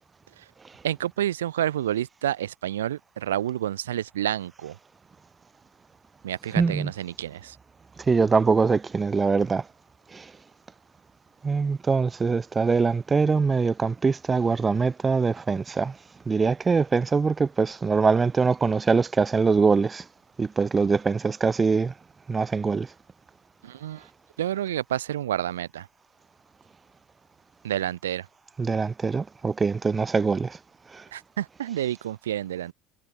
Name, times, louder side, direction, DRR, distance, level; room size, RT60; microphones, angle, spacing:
voice 1, 0.8-4.7 6.2-7.6 23.6-24.1 24.4-25.9 27.6-28.3 31.1-32.7, right 11 dB, 75° right, 1.4 m, -29 dB
voice 2, 6.6-6.9 8.1-9.7 10.1-10.3 11.4-16.0 16.3-20.0 20.4-21.9 22.3-22.9 28.6-30.6 30.9-31.0, right 4 dB, 25° right, 0.5 m, -23 dB
figure-of-eight pair, 65°, 0 cm